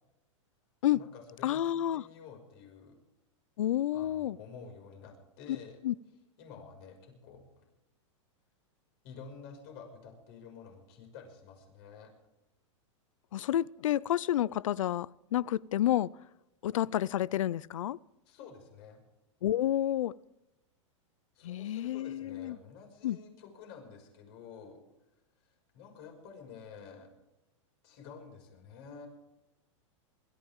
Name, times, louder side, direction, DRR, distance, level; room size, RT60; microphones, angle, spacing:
voice 1, 0.9-3.0 3.9-5.8 6.4-7.6 9.0-12.1 18.3-19.0 21.3-24.8 25.4-27.1 27.8-29.1, left 6 dB, 50° left, 5.9 m, -50 dB
voice 2, 1.4-2.0 3.6-4.4 5.8-5.9 13.3-16.1 16.6-18.0 19.4-20.1 21.4-22.6 23.0-23.2, left 12 dB, 85° left, 0.5 m, -30 dB
27.0 x 14.0 x 3.7 m
supercardioid pair, 145°, 16 cm